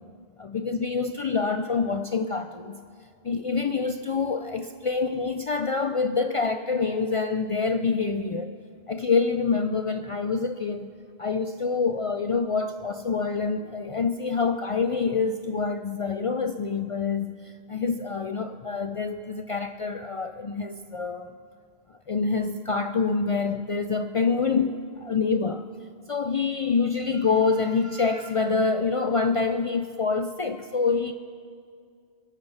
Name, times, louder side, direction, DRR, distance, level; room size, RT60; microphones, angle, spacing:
voice 1, 0.4-2.8 3.2-8.5 8.9-10.9 11.2-21.3 22.1-25.7 26.1-31.1, left 4 dB, 55° left, 0.3 m, -26 dB
22.5 x 8.9 x 5.6 m
omnidirectional pair, 1.1 m